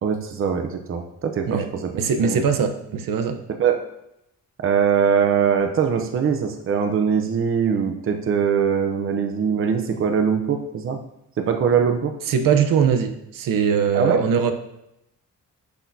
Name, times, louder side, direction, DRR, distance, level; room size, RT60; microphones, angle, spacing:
voice 1, 0.0-1.9 2.2-2.4 3.5-3.8 4.6-11.0 11.4-12.1 13.9-14.2, right 7 dB, 40° right, 6 dB, 0.7 m, -22 dB
voice 2, 1.5-3.4 12.3-14.5, right 6 dB, 85° right, 7 dB, 0.8 m, -21 dB
10.0 x 6.3 x 2.7 m, 0.82 s
wide cardioid pair, 170°, 32 cm